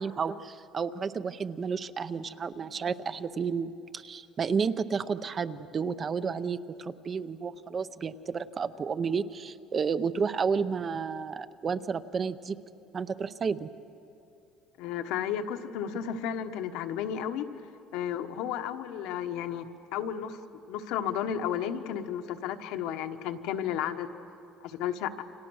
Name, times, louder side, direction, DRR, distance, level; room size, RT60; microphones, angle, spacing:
voice 1, 0.0-12.6 12.9-13.7, right 5 dB, 25° right, 12 dB, 0.6 m, -31 dB
voice 2, 14.8-17.5 17.9-20.4 20.7-24.1 24.6-25.2, left 9 dB, 85° left, 7 dB, 1.3 m, -33 dB
29.0 x 26.5 x 6.4 m, 2.6 s
cardioid pair, 170°, 0 cm